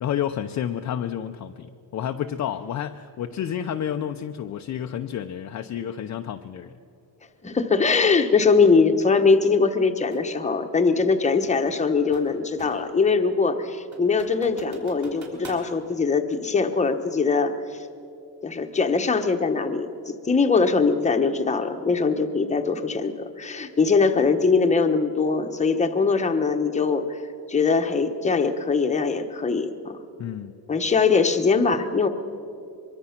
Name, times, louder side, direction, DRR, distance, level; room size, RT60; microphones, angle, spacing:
voice 1, 0.0-6.8 30.2-30.5, left 9 dB, 40° left, 6 dB, 0.6 m, -30 dB
voice 2, 7.4-17.5 18.4-27.2 27.5-30.0 30.7-32.1, left 4 dB, 15° left, 6 dB, 1.0 m, -22 dB
sound 1, 10.1-10.3 11.7-13.0 13.4-13.5 13.9-15.7, right 3 dB, 40° right, 4.6 m, -45 dB
23.5 x 23.0 x 5.8 m, 2.7 s
cardioid pair, 150°, 44 cm